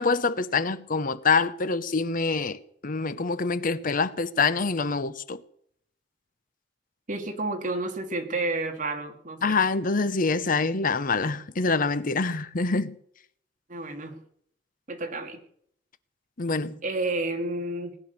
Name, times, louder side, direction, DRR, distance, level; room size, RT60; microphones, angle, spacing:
voice 1, 0.0-5.4 9.4-13.0 16.4-16.8, left 4 dB, 50° left, 0.9 m, -25 dB
voice 2, 7.1-9.7 13.7-14.2 14.9-15.4 16.8-17.9, right 2 dB, 45° right, 2.5 m, -30 dB
19.0 x 10.0 x 6.8 m
head